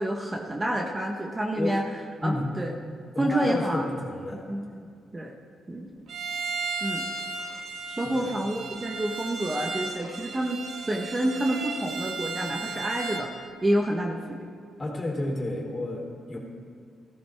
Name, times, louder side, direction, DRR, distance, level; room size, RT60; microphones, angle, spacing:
voice 1, 0.0-1.8 2.2-2.7 3.2-3.8 4.3-4.7 5.1-5.3 5.7-5.9 6.8-7.0 8.0-10.6 10.9-14.5, right 1 dB, 25° right, 1 dB, 1.2 m, -28 dB
voice 2, 2.2-2.6 3.1-4.4 7.9-8.3 14.8-16.4, left 1 dB, 30° left, -2 dB, 3.5 m, -31 dB
Bowed string instrument, 6.1-13.3, right 4 dB, 70° right, 1.4 m, -35 dB
14.5 x 14.0 x 3.5 m, 2.2 s
cardioid pair, 75°, 0 cm